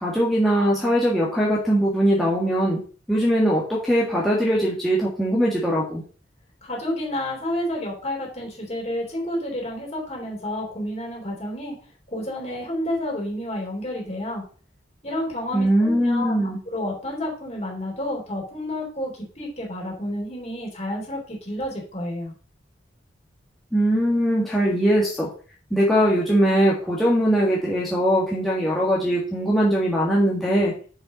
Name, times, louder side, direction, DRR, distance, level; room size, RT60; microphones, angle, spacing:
voice 1, 0.0-2.8 3.1-6.0 15.5-16.6 23.7-25.3 25.7-30.7, equal, ahead, -6 dB, 1.7 m, -21 dB
voice 2, 6.6-11.7 12.1-14.4 15.0-22.3, left 1 dB, 35° left, -1 dB, 3.7 m, -30 dB
7.0 x 5.6 x 5.2 m, 0.41 s
head